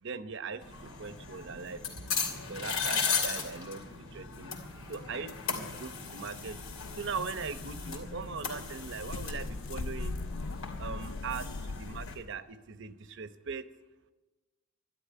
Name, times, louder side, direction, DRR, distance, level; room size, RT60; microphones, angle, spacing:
voice 1, 0.0-1.8 2.5-4.6 4.9-6.6 6.9-10.2 10.8-13.7, right 5 dB, 60° right, 11 dB, 0.8 m, -40 dB
sound 1, 0.6-12.1, left 5 dB, 80° left, 2.9 m, -37 dB
sound 2, 6.4-12.3, left 3 dB, 60° left, 0.5 m, -40 dB
12.5 x 12.0 x 9.4 m, 1.2 s
head